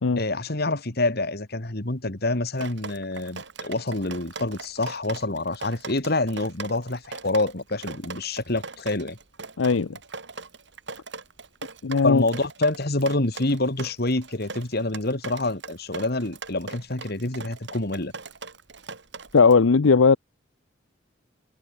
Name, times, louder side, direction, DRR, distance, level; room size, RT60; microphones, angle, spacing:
voice 1, 0.2-9.2 12.0-18.1, left 2 dB, 50° left, 2.3 m, -27 dB
Drip, 2.6-19.6, right 4 dB, 60° right, 4.0 m, -40 dB
voice 2, 9.6-9.9 11.8-12.2 19.3-20.2, left 4 dB, 85° left, 0.6 m, -17 dB
head